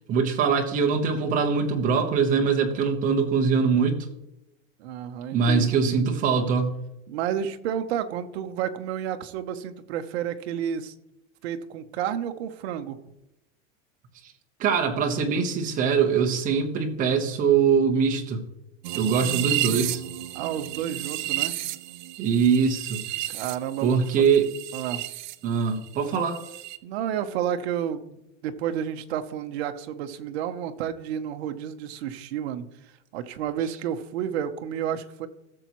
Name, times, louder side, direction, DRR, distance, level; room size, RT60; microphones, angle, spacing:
voice 1, 0.1-4.1 5.3-6.7 14.6-18.4 18.9-20.0 22.2-23.0 23.8-24.5 25.4-26.4, right 6 dB, 20° right, 3 dB, 1.0 m, -22 dB
voice 2, 4.8-6.0 7.1-10.9 11.4-13.0 20.3-21.5 23.3-24.2 24.7-25.1 26.8-32.7 33.1-35.3, right 9 dB, 55° right, 8 dB, 0.9 m, -31 dB
sound 1, 18.8-25.4 25.6-26.8, right 15 dB, 40° right, 0.4 m, -32 dB
16.5 x 7.0 x 3.1 m, 0.90 s
supercardioid pair, 170°, 39 cm